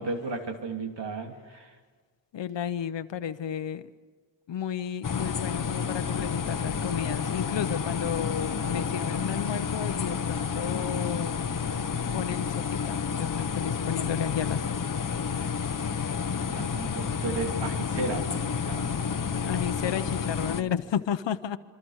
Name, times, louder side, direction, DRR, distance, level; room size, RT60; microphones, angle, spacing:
voice 1, 0.0-1.8 16.5-19.0, right 3 dB, 75° right, 4 dB, 2.9 m, -34 dB
voice 2, 2.3-3.9 4.5-11.3 12.1-14.9 15.5-15.6 19.4-21.6, left 9 dB, 80° left, 10 dB, 0.9 m, -32 dB
sound 1, 5.0-20.6, left 6 dB, 45° left, 1.1 m, -30 dB
27.5 x 24.0 x 6.5 m, 1.5 s
wide cardioid pair, 105°, 43 cm